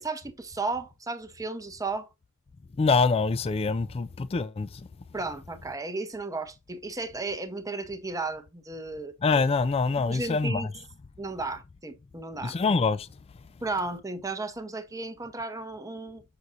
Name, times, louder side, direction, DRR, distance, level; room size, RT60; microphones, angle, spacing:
voice 1, 0.0-2.1 5.1-9.1 10.0-10.7 11.2-12.6 13.6-16.2, right 3 dB, 15° right, 0.7 m, -34 dB
voice 2, 2.8-4.8 9.2-10.7 12.4-13.1, left 4 dB, 25° left, 0.3 m, -25 dB
6.7 x 6.1 x 2.5 m
head